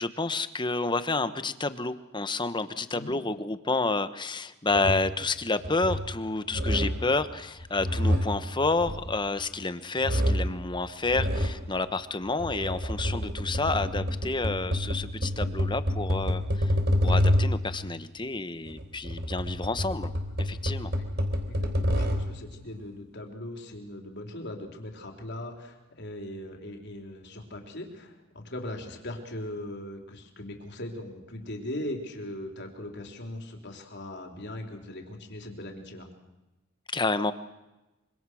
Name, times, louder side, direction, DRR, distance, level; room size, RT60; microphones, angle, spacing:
voice 1, 0.0-16.7 17.0-20.1 20.4-20.9 36.9-37.3, left 3 dB, 20° left, 12 dB, 1.1 m, -29 dB
sound 1, 4.7-5.2 5.6-6.2 6.5-7.1 7.6-9.6 10.0-10.6 11.1-11.6 12.3-17.7 18.7-22.4, equal, 50° right, 3.6 m, -28 dB
voice 2, 21.5-36.1, left 1 dB, 55° left, 3 dB, 4.0 m, -39 dB
25.5 x 25.0 x 6.4 m, 1.0 s
head